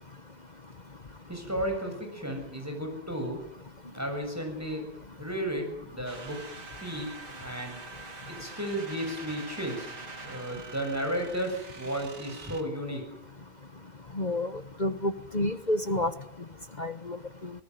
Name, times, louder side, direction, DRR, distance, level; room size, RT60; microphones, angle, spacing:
voice 1, 1.3-3.4 3.9-4.9 5.2-6.4 6.8-7.1 7.4-7.8 8.3-9.9 10.2-13.0, equal, 10° right, 4 dB, 7.1 m, -33 dB
sound 1, 6.0-12.6, right 3 dB, 65° right, 3.1 m, -44 dB
voice 2, 14.2-14.5 14.8-16.1 16.8-17.2, left 1 dB, 30° left, 11 dB, 1.0 m, -29 dB
25.0 x 18.5 x 9.4 m, 0.76 s
omnidirectional pair, 2.0 m